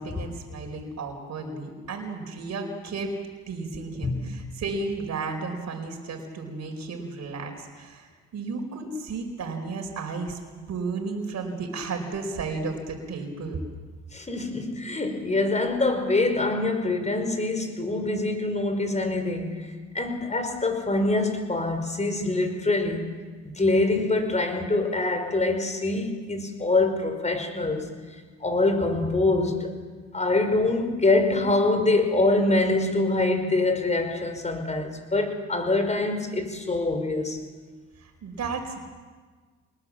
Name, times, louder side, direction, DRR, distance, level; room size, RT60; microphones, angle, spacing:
voice 1, 0.0-3.2 3.5-13.6 38.0-38.8, right 3 dB, 60° right, 3 dB, 4.9 m, -33 dB
voice 2, 4.0-4.5 14.1-23.1 23.5-27.9 28.4-29.7 30.1-37.4, left 2 dB, 20° left, 6 dB, 5.2 m, -25 dB
26.5 x 20.0 x 7.5 m, 1.4 s
cardioid pair, 80°, 30 cm